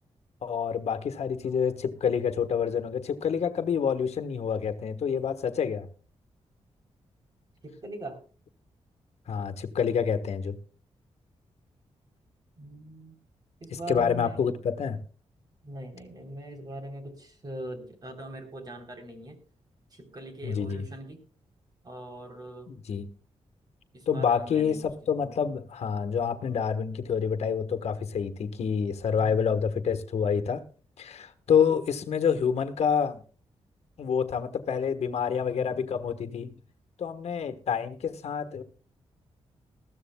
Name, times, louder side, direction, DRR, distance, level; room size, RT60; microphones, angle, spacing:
voice 1, 0.4-5.9 9.3-10.6 13.7-15.0 20.4-20.8 22.7-23.1 24.1-30.6 31.0-33.2 34.0-36.5 37.0-38.6, left 7 dB, 70° left, 1.4 m, -27 dB
voice 2, 7.6-8.2 12.6-13.2 13.6-14.4 15.6-19.4 19.9-21.2 21.8-22.7 23.9-24.9 25.2-25.3 29.2-29.6, right 1 dB, 35° right, 3.6 m, -41 dB
20.5 x 14.5 x 2.3 m
wide cardioid pair, 150°, 11 cm